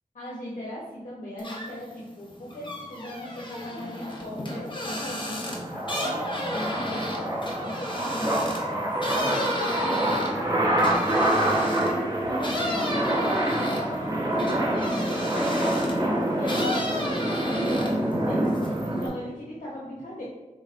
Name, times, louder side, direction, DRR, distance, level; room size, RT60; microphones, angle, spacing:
voice 1, 0.1-20.2, left 1 dB, 70° left, -6 dB, 1.0 m, -38 dB
sound 1, 1.4-1.9 2.3-12.0 12.4-16.0 16.4-18.1 18.4-19.1, left 1 dB, 35° left, 0.9 m, -33 dB
sound 2, 3.8-19.1, right 1 dB, 30° right, 0.9 m, -27 dB
5.0 x 4.0 x 2.5 m, 1.2 s
wide cardioid pair, 70°, 14 cm